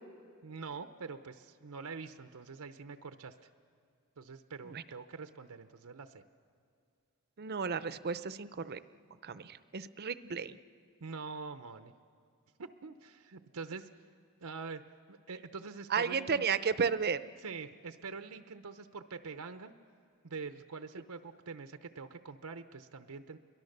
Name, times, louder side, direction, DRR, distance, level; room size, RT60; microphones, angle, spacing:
voice 1, 0.4-3.3 4.2-6.2 11.0-11.9 12.6-13.9 14.4-14.8 15.1-16.4 17.4-19.7 20.2-23.4, right 4 dB, 85° right, 8 dB, 0.7 m, -45 dB
voice 2, 7.4-8.8 9.2-10.6 15.9-17.2, right 6 dB, 45° right, 14 dB, 0.6 m, -33 dB
29.0 x 22.5 x 6.7 m, 2.3 s
head